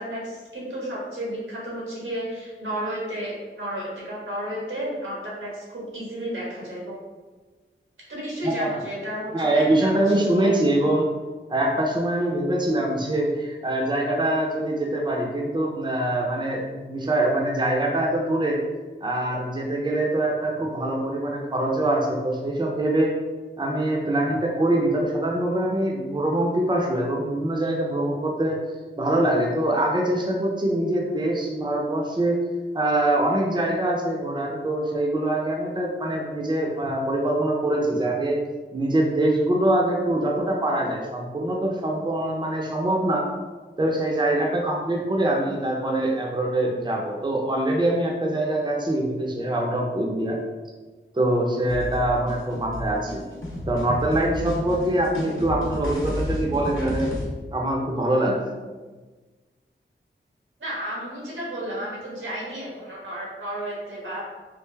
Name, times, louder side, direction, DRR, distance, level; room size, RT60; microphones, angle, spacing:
voice 1, 0.0-7.0 8.1-10.5 60.6-64.2, equal, 90° right, -6 dB, 1.4 m, -32 dB
voice 2, 8.4-8.8 9.3-11.1 11.5-18.6 19.0-23.1 23.6-28.6 29.0-32.4 32.7-38.4 38.7-43.3 43.8-50.4 51.1-53.2 53.7-57.1 57.5-58.5, right 1 dB, 20° right, -1 dB, 0.6 m, -24 dB
sound 1, 51.7-57.3, left 1 dB, 80° left, 0.9 m, -31 dB
3.3 x 2.4 x 3.3 m, 1.3 s
wide cardioid pair, 50°, 20 cm